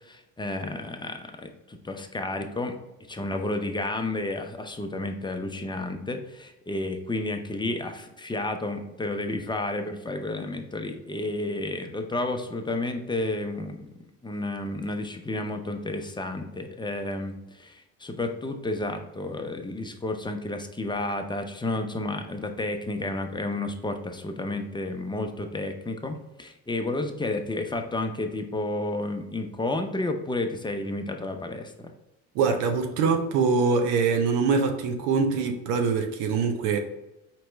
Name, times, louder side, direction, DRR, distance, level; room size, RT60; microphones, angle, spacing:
voice 1, 0.0-2.7 3.1-13.9 14.2-31.9, left 2 dB, 10° left, 5 dB, 0.5 m, -31 dB
voice 2, 32.3-36.8, right 5 dB, 85° right, 5 dB, 0.7 m, -24 dB
4.4 x 3.0 x 3.2 m, 0.94 s
supercardioid pair, 75°, 39 cm